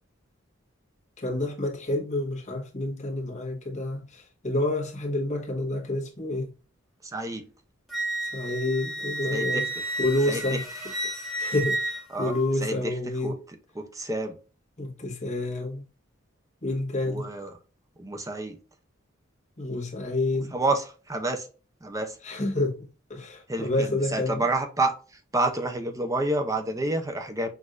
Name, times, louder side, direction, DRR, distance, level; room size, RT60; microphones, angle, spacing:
voice 1, 1.2-6.5 8.3-9.7 10.0-10.6 11.4-13.3 14.8-15.8 16.6-17.3 19.6-20.5 22.2-24.4, left 2 dB, 35° left, 1.3 m, -29 dB
voice 2, 7.0-7.5 9.3-9.7 10.3-10.6 12.1-12.3 12.6-14.4 17.1-17.5 18.0-18.6 20.5-21.5 21.8-22.2 23.5-24.9 25.3-27.5, right 2 dB, 15° right, 0.6 m, -29 dB
Wind instrument woodwind instrument, 7.9-12.5, right 1 dB, ahead, 1.2 m, -31 dB
6.1 x 2.6 x 2.4 m
head